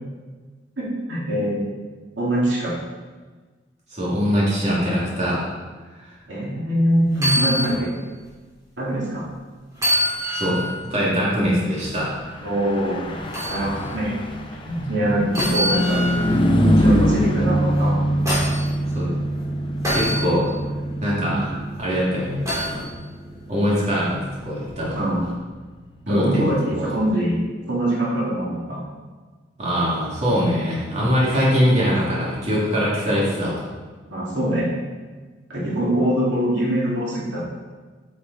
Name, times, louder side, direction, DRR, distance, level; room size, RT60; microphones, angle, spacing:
voice 1, 0.8-1.7 2.2-2.7 6.3-7.9 8.8-9.3 12.4-13.1 13.5-14.1 14.7-16.0 16.4-18.0 21.3-21.5 24.9-25.2 26.1-27.4 27.7-28.8 34.1-34.7 35.5-37.4, right 1 dB, 85° right, -6 dB, 2.6 m, -23 dB
voice 2, 3.9-5.4 10.3-10.6 10.9-12.1 15.7-15.8 18.9-19.1 19.9-20.5 21.0-22.4 22.6-22.8 23.5-25.1 26.1-26.9 29.6-33.6, equal, 40° right, -7 dB, 2.8 m, -22 dB
sound 1, 7.1-7.8 8.2-8.3 9.7-10.8 13.3-13.6 15.3-16.3 17.8-18.7 19.8-20.3 22.5-22.8 24.6-24.7, equal, 20° right, 3.1 m, -24 dB
Car passing by / Truck, 12.3-26.0, equal, 30° left, 0.8 m, -24 dB
8.7 x 7.3 x 4.2 m, 1.3 s
head